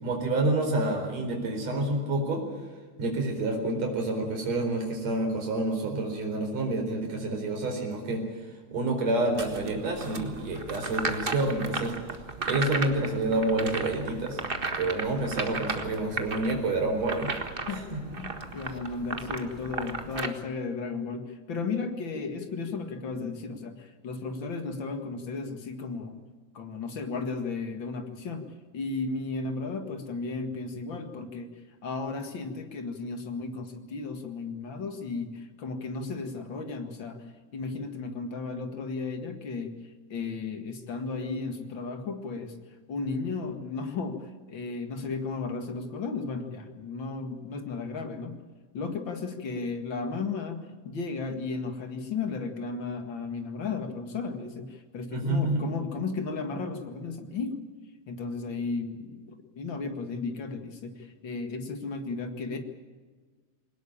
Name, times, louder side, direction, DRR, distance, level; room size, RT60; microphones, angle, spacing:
voice 1, 0.0-2.4 3.0-8.2 8.7-12.0 12.5-14.4 14.8-17.3 17.7-18.0 55.1-55.6, right 2 dB, 60° right, 2 dB, 5.5 m, -28 dB
sound 1, 9.3-20.3, right 3 dB, 30° right, 1.1 m, -35 dB
voice 2, 17.6-26.2 26.5-28.5 28.7-37.3 37.5-39.8 40.1-42.5 42.9-48.4 48.7-57.5 58.1-62.6, left 4 dB, 45° left, 6 dB, 2.4 m, -34 dB
21.5 x 19.0 x 8.7 m, 1.4 s
omnidirectional pair, 3.4 m